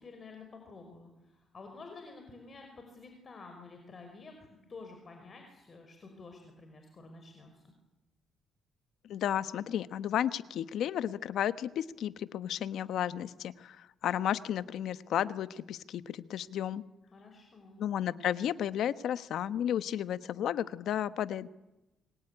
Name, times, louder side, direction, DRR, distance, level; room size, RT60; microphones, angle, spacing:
voice 1, 0.0-4.4 4.7-7.7 17.1-17.8, left 3 dB, 40° left, 4 dB, 5.3 m, -50 dB
voice 2, 9.1-16.8 17.8-21.5, left 10 dB, 75° left, 14 dB, 1.1 m, -33 dB
25.5 x 22.0 x 9.9 m, 1.0 s
cardioid pair, 90°, 0 cm